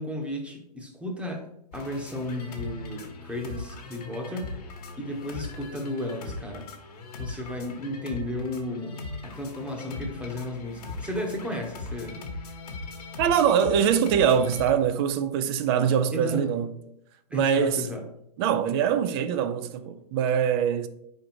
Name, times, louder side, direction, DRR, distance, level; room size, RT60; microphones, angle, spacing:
voice 1, 0.0-1.5 1.7-4.5 5.0-6.7 7.2-12.2 16.1-16.4 17.3-18.0, left 1 dB, 5° right, 1.1 m, -34 dB
sound 1, 1.7-14.7, left 3 dB, 65° left, 1.4 m, -39 dB
voice 2, 13.2-16.7 17.3-17.9 18.4-20.9, right 8 dB, 35° right, 0.6 m, -23 dB
4.9 x 4.5 x 4.6 m
hypercardioid pair, 120°, 21 cm